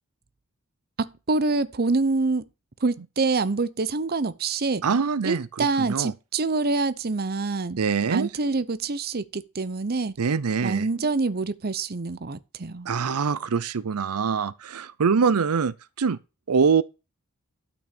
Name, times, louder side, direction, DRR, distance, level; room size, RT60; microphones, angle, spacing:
voice 1, 1.0-2.5 2.8-4.8 5.2-7.8 8.1-10.1 10.6-12.9, right 3 dB, 45° right, 0.8 m, -26 dB
voice 2, 4.8-6.1 7.8-8.3 10.2-10.9 12.8-16.2 16.5-16.8, right 5 dB, 85° right, 0.6 m, -24 dB
12.5 x 6.1 x 6.0 m
head